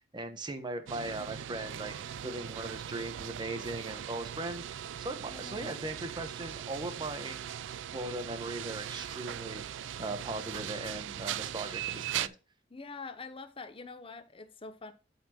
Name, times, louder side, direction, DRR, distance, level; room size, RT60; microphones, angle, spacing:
voice 1, 0.1-1.9 2.2-7.4 7.9-12.3, right 2 dB, 25° right, 1.0 m, -39 dB
sound 1, 0.9-12.3, right 10 dB, 70° right, 0.3 m, -39 dB
voice 2, 5.3-5.9 12.7-14.9, left 4 dB, 30° left, 0.8 m, -45 dB
12.5 x 4.3 x 2.9 m
head